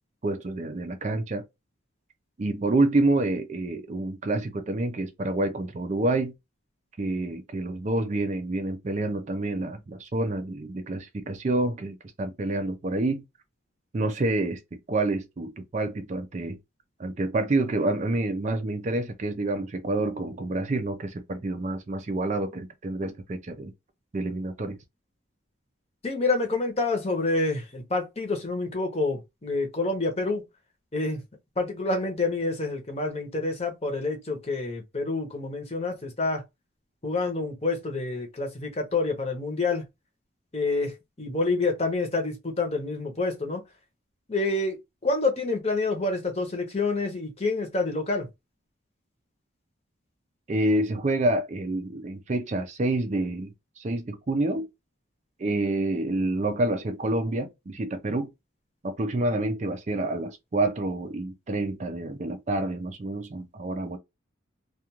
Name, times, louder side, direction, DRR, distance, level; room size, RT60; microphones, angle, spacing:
voice 1, 0.2-1.4 2.4-6.3 7.0-13.2 13.9-14.6 14.9-16.6 17.0-23.7 24.1-24.8 50.5-54.7 55.4-58.3 58.8-64.0, right 2 dB, 35° right, 0.4 m, -28 dB
voice 2, 26.0-30.4 30.9-31.2 31.6-36.4 37.0-39.8 40.5-43.6 44.3-48.3, left 3 dB, 30° left, 0.8 m, -28 dB
2.4 x 2.3 x 2.8 m
head